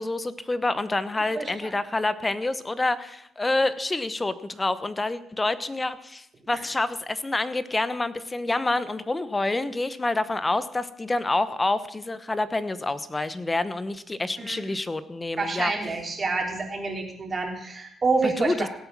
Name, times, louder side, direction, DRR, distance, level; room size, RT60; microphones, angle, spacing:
voice 1, 0.0-15.7 18.2-18.7, left 2 dB, 20° left, 14 dB, 0.9 m, -27 dB
voice 2, 1.3-1.7 6.5-6.6 14.4-14.6 15.4-18.7, right 3 dB, 35° right, 2 dB, 3.2 m, -28 dB
17.0 x 8.1 x 6.0 m, 0.77 s
cardioid pair, 90°, 0 cm